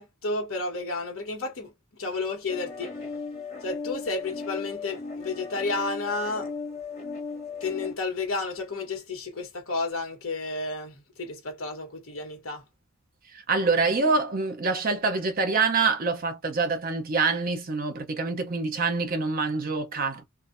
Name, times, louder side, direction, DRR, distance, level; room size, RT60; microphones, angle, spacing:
voice 1, 0.0-1.7 2.0-2.9 3.6-6.5 7.6-12.6, left 3 dB, 70° left, 1.2 m, -31 dB
sound 1, 2.5-7.9, left 4 dB, 30° left, 1.3 m, -36 dB
voice 2, 13.5-20.2, right 4 dB, 45° right, 0.8 m, -25 dB
2.7 x 2.4 x 2.6 m
head